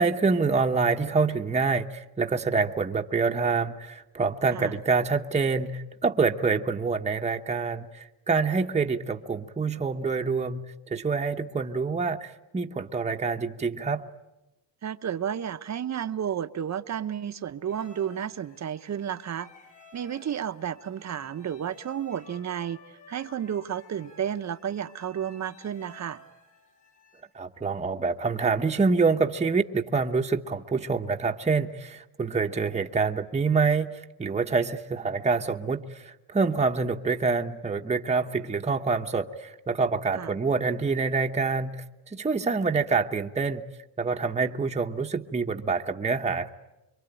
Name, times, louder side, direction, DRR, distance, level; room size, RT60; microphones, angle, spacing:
voice 1, 0.0-10.6 10.9-14.1 27.3-41.8 42.1-43.6 44.0-46.5, right 4 dB, 15° right, 4 dB, 1.0 m, -26 dB
voice 2, 14.8-19.5 19.9-22.8 23.1-26.2 40.1-40.4, right 9 dB, 40° right, 11 dB, 1.0 m, -32 dB
sound 1, 17.7-27.2, left 2 dB, 80° left, 6.9 m, -54 dB
26.5 x 23.0 x 9.0 m, 0.97 s
cardioid pair, 95°, 42 cm